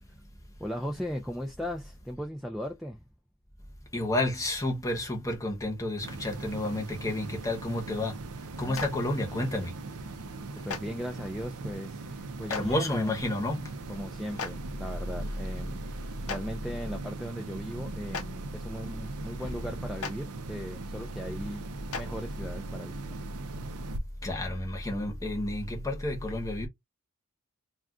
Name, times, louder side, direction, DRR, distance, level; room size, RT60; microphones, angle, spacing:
voice 1, 0.6-3.0 8.6-8.8 10.5-13.2 13.9-21.6 21.9-23.2, equal, ahead, 0.3 m, -38 dB
voice 2, 3.9-8.1 8.6-9.7 12.5-13.6 24.2-26.7, left 1 dB, 15° left, 0.8 m, -30 dB
sound 1, 6.0-24.0, right 3 dB, 80° right, 0.5 m, -41 dB
Clapping, 8.7-8.9 10.7-10.8 12.5-12.6 14.4-14.5 16.3-16.4 18.1-18.2 20.0-20.1 21.9-22.0, left 5 dB, 85° left, 0.6 m, -33 dB
2.3 x 2.3 x 3.6 m
head